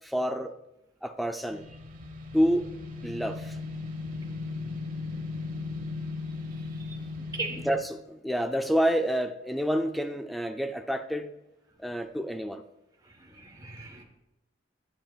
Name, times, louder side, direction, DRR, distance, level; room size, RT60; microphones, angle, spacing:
voice 1, 0.0-0.5 1.0-1.7 2.3-2.7 3.0-3.6 7.6-11.3 11.8-12.6, equal, ahead, 7 dB, 0.4 m, -28 dB
sound 1, 1.5-7.8, left 3 dB, 45° right, 1.1 m, -37 dB
voice 2, 6.6-7.0 7.3-7.6 13.0-14.0, right 3 dB, 20° right, 2 dB, 1.2 m, -39 dB
10.0 x 8.7 x 2.4 m, 0.93 s
head